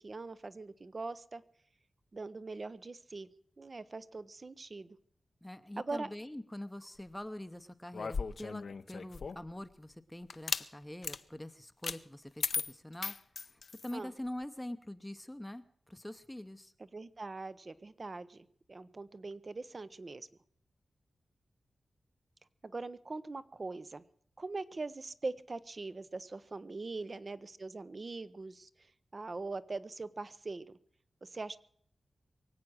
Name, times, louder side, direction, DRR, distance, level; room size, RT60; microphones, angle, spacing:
voice 1, 0.0-1.4 2.1-3.3 3.6-5.0 5.8-6.1 13.9-14.1 16.8-20.3 22.6-24.0 24.4-28.7 29.1-30.7 31.2-31.6, right 3 dB, 40° right, 15 dB, 0.8 m, -42 dB
voice 2, 5.4-13.1 13.5-16.7, left 1 dB, 10° left, 10 dB, 0.8 m, -44 dB
sound 1, 7.9-9.5 10.3-10.7 11.0-11.2 11.8-12.0 12.4-14.0, left 5 dB, 65° left, 0.7 m, -37 dB
23.5 x 8.6 x 6.3 m, 0.64 s
wide cardioid pair, 85°, 0 cm